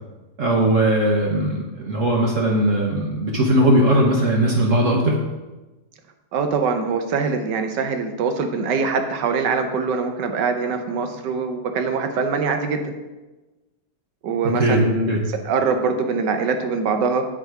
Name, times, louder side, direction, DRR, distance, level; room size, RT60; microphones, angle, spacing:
voice 1, 0.4-5.2 14.4-15.2, right 1 dB, 55° right, -1 dB, 1.1 m, -19 dB
voice 2, 6.3-12.9 14.2-17.3, right 5 dB, 90° right, 6 dB, 1.4 m, -23 dB
7.4 x 4.9 x 4.6 m, 1.1 s
omnidirectional pair, 1.8 m